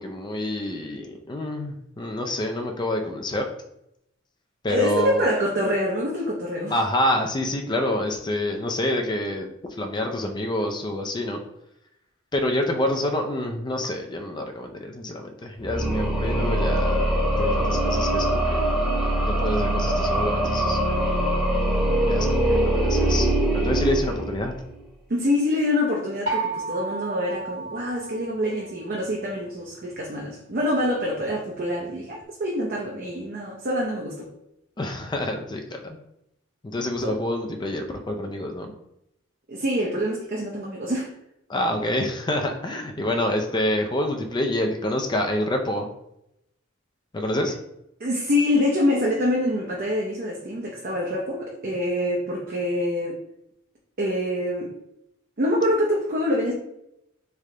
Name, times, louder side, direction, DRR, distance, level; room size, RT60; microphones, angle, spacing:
voice 1, 0.0-3.4 4.6-5.3 6.7-11.4 12.3-18.6 19.2-20.8 22.0-24.5 34.8-36.0 36.6-38.7 41.5-45.9 47.1-47.5, left 1 dB, 20° left, 4 dB, 0.4 m, -27 dB
voice 2, 4.7-6.8 25.1-34.3 37.0-37.2 39.5-41.1 48.0-53.2 54.0-54.7 55.4-56.5, left 1 dB, 45° right, -2 dB, 0.6 m, -25 dB
sound 1, 15.6-24.7, right 1 dB, 5° right, 0.9 m, -23 dB
sound 2, 26.3-29.0, right 3 dB, 65° right, 1.5 m, -32 dB
3.4 x 3.3 x 3.7 m, 0.82 s
head